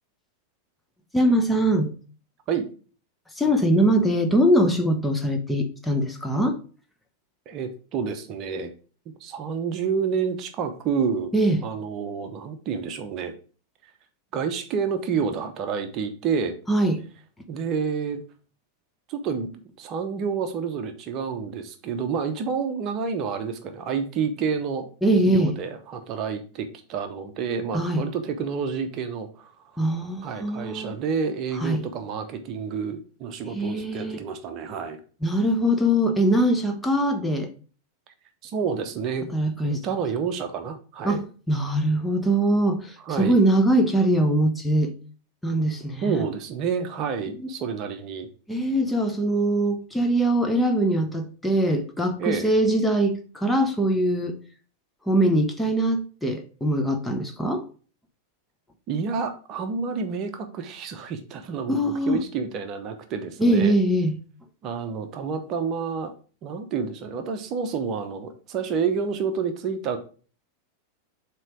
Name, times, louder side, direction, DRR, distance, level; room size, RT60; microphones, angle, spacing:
voice 1, 1.1-1.9 3.4-6.6 11.3-11.6 16.7-17.0 25.0-25.5 27.7-28.0 29.8-30.9 31.6-31.8 33.5-34.2 35.2-37.5 39.3-39.8 41.0-44.9 45.4-46.2 47.4-47.5 48.5-54.4 55.1-57.7 61.7-62.2 63.4-64.2, right 1 dB, 5° left, 5 dB, 0.8 m, -22 dB
voice 2, 7.5-8.7 9.2-11.3 11.6-13.4 14.3-16.6 17.5-18.2 19.1-19.5 19.8-24.9 25.2-29.8 30.2-35.0 38.4-39.3 39.6-41.2 43.1-43.4 46.0-48.3 52.2-52.5 58.9-63.8 64.6-66.1 66.4-70.0, right 6 dB, 35° right, 8 dB, 0.8 m, -29 dB
7.4 x 3.0 x 4.6 m, 0.39 s
figure-of-eight pair, 90°, 0 cm